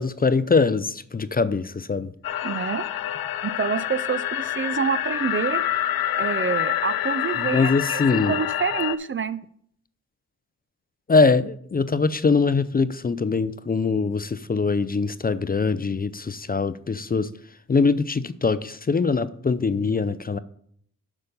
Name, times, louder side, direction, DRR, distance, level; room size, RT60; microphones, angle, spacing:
voice 1, 0.0-2.1 7.4-8.4 11.1-17.3 17.7-20.4, left 4 dB, 25° left, 15 dB, 0.5 m, -22 dB
sound 1, 2.2-9.0, left 12 dB, 75° left, 0.5 m, -27 dB
voice 2, 2.4-2.9 3.4-5.6 6.1-9.4, right 6 dB, 35° right, 14 dB, 0.4 m, -27 dB
8.2 x 5.3 x 5.4 m, 0.64 s
supercardioid pair, 45°, 36 cm